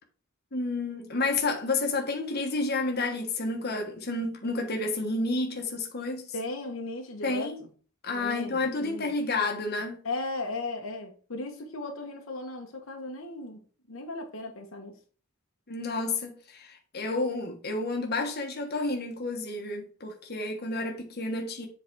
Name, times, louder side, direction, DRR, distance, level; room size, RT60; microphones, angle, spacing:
voice 1, 0.5-6.3 7.2-7.6 8.0-10.0 15.7-21.7, left 3 dB, 50° left, 1.3 m, -30 dB
voice 2, 6.3-7.5 8.1-9.1 10.0-13.6 13.9-15.0, left 2 dB, 75° left, 1.2 m, -36 dB
7.6 x 4.0 x 4.6 m
head